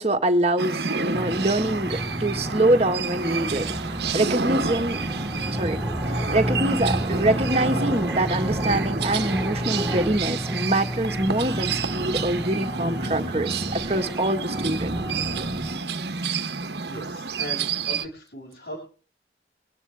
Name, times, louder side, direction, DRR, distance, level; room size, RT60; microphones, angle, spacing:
voice 1, 0.0-5.0 5.5-5.8 6.1-14.9, right 1 dB, 35° right, 1.7 m, -25 dB
sound 1, 0.6-18.1, right 4 dB, 75° right, 1.2 m, -30 dB
sound 2, 1.1-15.8, equal, 10° right, 1.0 m, -31 dB
voice 2, 16.9-18.8, equal, 75° left, 6.8 m, -38 dB
24.5 x 9.7 x 3.5 m
head